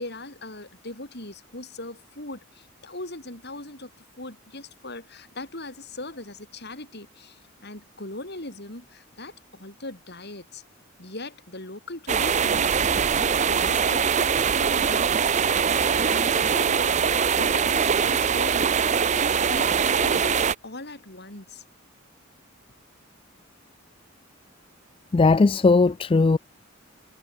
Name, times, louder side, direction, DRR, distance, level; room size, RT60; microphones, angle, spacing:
voice 1, 0.0-3.9 4.2-10.6 11.0-15.2 15.8-18.7 19.1-21.6, left 2 dB, 55° left, 7.2 m, -39 dB
sound 1, 12.1-20.5, right 6 dB, 35° right, 0.6 m, -22 dB
voice 2, 25.1-26.4, left 3 dB, 25° left, 0.3 m, -18 dB
head